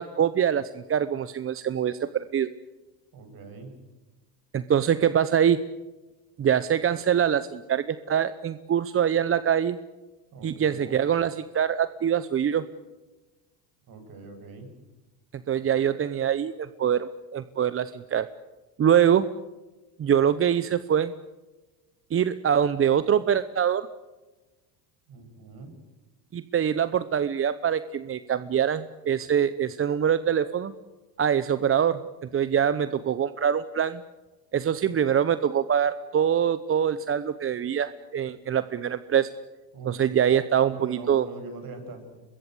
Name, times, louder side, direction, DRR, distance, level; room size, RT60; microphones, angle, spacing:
voice 1, 0.0-2.5 4.5-5.6 6.4-9.8 10.4-12.6 15.5-18.3 18.8-19.3 20.0-21.1 22.1-23.9 26.3-30.7 31.2-32.0 32.3-34.0 34.5-39.3 39.9-41.3, right 8 dB, 30° right, 14 dB, 0.9 m, -24 dB
voice 2, 3.1-3.7 10.3-11.0 13.9-14.7 25.1-25.7 39.7-40.0 40.7-42.2, right 3 dB, 50° right, 6 dB, 7.8 m, -42 dB
24.0 x 22.0 x 8.2 m, 1.2 s
supercardioid pair, 95°, 46 cm